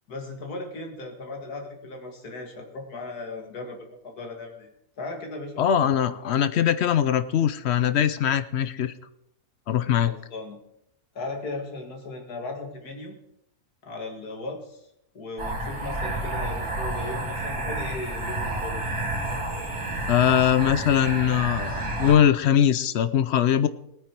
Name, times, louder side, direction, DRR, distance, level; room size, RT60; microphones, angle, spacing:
voice 1, 0.1-4.7 5.0-5.9 6.4-6.7 10.0-10.6 11.1-13.2 13.8-14.9 15.1-18.8, left 2 dB, 90° left, 3 dB, 2.5 m, -37 dB
voice 2, 5.6-8.9 9.7-10.1 20.1-23.7, left 9 dB, 60° left, 13 dB, 0.7 m, -21 dB
sound 1, 15.4-22.1, right 2 dB, 80° right, 3.2 m, -30 dB
18.5 x 9.2 x 4.5 m, 0.78 s
omnidirectional pair, 1.6 m